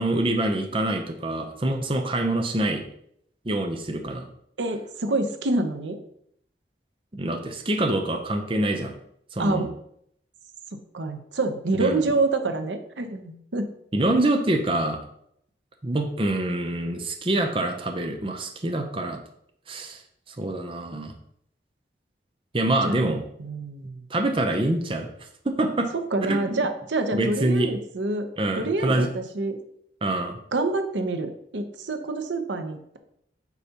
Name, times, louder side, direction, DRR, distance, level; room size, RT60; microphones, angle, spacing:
voice 1, 0.0-2.8 3.5-4.3 7.1-8.9 9.3-9.7 11.8-12.0 13.9-15.0 15.8-19.2 19.7-20.0 20.3-21.1 22.5-23.2 24.1-25.1 25.4-25.9 26.3-26.6 27.1-27.7 28.4-29.1 30.0-30.4, right 1 dB, 30° right, 5 dB, 0.6 m, -25 dB
voice 2, 4.6-6.0 9.4-9.7 10.9-13.7 22.8-24.0 25.9-28.3 28.6-29.6 30.5-33.0, right 2 dB, 90° right, 7 dB, 0.8 m, -27 dB
8.2 x 5.6 x 2.9 m, 0.70 s
head